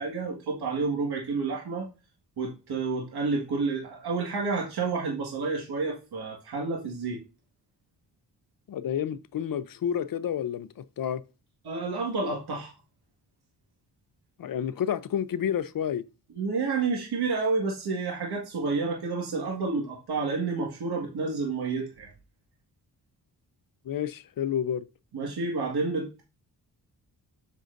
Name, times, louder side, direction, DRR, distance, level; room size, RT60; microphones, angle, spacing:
voice 1, 0.0-1.9 2.4-7.2 11.6-12.7 16.4-22.1 25.1-26.2, right 4 dB, 70° right, 1.9 m, -30 dB
voice 2, 8.7-10.7 11.0-11.2 14.4-16.0 23.9-24.8, left 9 dB, 60° left, 0.7 m, -29 dB
7.7 x 7.5 x 2.6 m
cardioid pair, 95°, 39 cm